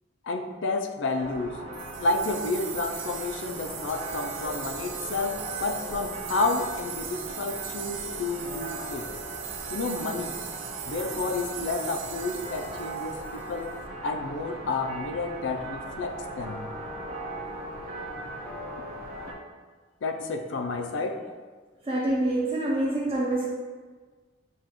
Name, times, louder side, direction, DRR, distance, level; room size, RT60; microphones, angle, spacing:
voice 1, 0.2-1.6 2.0-9.1 9.7-10.4 10.9-13.7 14.0-16.7 20.0-21.3, left 3 dB, 75° left, 5 dB, 0.4 m, -30 dB
sound 1, 1.2-19.3, right 2 dB, 55° right, 0.9 m, -39 dB
sound 2, 1.7-13.7, right 8 dB, 80° right, 0.5 m, -39 dB
sound 3, 4.5-19.3, left 2 dB, 10° left, 0.4 m, -48 dB
voice 2, 21.8-23.4, right 1 dB, 30° right, -6 dB, 0.6 m, -26 dB
7.0 x 2.4 x 3.0 m, 1.4 s
head